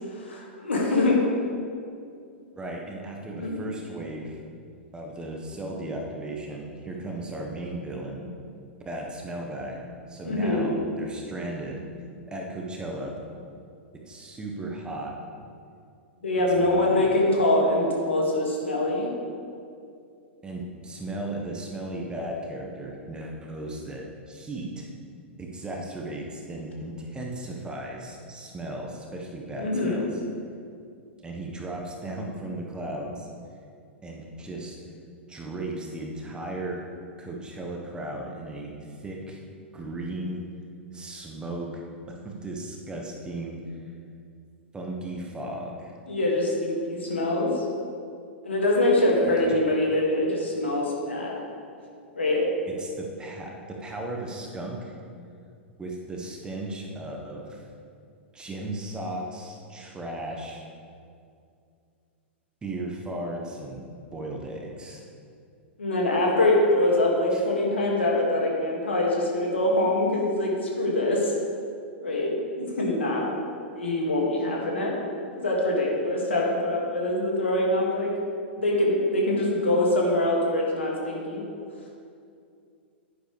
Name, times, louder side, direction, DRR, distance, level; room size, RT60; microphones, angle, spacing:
voice 1, 0.2-1.2 3.4-3.5 10.2-10.7 16.2-19.1 29.6-30.0 46.1-47.7 48.4-51.3 52.2-52.5 65.8-71.3 72.0-73.3 73.7-74.9 75.4-78.1 78.6-81.4, left 1 dB, 80° left, -2 dB, 2.2 m, -24 dB
voice 2, 2.5-4.4 4.9-8.2 8.8-9.8 10.1-11.8 12.3-13.1 13.9-15.1 16.6-17.2 20.4-24.9 25.4-30.1 31.2-33.3 34.0-34.8 35.3-36.8 37.2-39.4 39.7-40.4 40.9-43.6 44.7-45.9 49.2-49.6 52.7-54.9 55.8-57.6 58.3-60.6 62.6-63.8 64.1-65.0 67.3-67.5, right 1 dB, 15° right, 0 dB, 1.3 m, -36 dB
10.0 x 10.0 x 3.4 m, 2.4 s
figure-of-eight pair, 100°, 6 cm